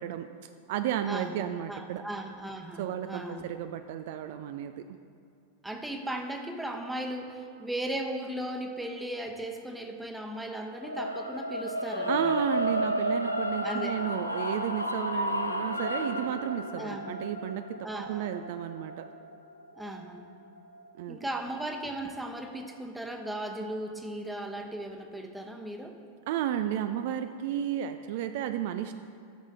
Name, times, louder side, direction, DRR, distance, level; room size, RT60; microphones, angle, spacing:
voice 1, 0.0-2.0 2.8-5.0 12.1-19.1 21.0-21.2 26.3-28.9, right 10 dB, 50° right, 9 dB, 0.3 m, -33 dB
voice 2, 1.0-3.4 5.6-12.3 13.6-14.0 16.8-17.2 17.8-18.3 19.8-20.3 21.1-26.0, right 1 dB, 5° right, 3 dB, 0.9 m, -37 dB
sound 1, 10.8-21.0, equal, 85° left, 0.6 m, -33 dB
13.5 x 6.3 x 3.7 m, 2.5 s
figure-of-eight pair, 90°, 0 cm